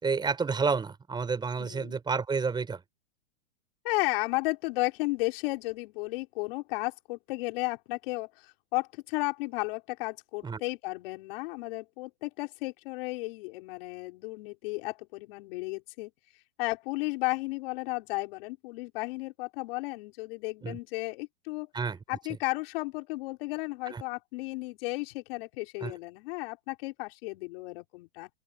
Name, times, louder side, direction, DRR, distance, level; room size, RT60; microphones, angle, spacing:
voice 1, 0.0-2.8 10.4-10.6 20.6-20.8 21.7-22.0 23.9-24.0 25.8-25.9, right 5 dB, 10° right, 5.0 m, -30 dB
voice 2, 1.6-2.0 3.8-16.1 16.6-21.7 22.1-28.3, left 23 dB, 50° left, 5.5 m, -34 dB
hypercardioid pair, 140°, 38 cm